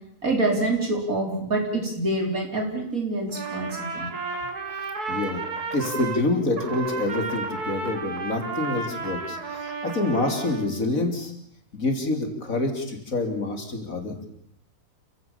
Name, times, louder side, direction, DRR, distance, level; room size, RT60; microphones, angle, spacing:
voice 1, 0.2-4.1, right 2 dB, 65° right, 2 dB, 4.2 m, -26 dB
Trumpet, 3.3-6.2 6.6-10.7, right 4 dB, 80° right, 2.9 m, -32 dB
voice 2, 5.1-5.4 5.7-11.3 11.7-14.1, left 2 dB, 60° left, 4 dB, 3.9 m, -27 dB
29.0 x 16.5 x 7.4 m, 0.72 s
omnidirectional pair, 1.6 m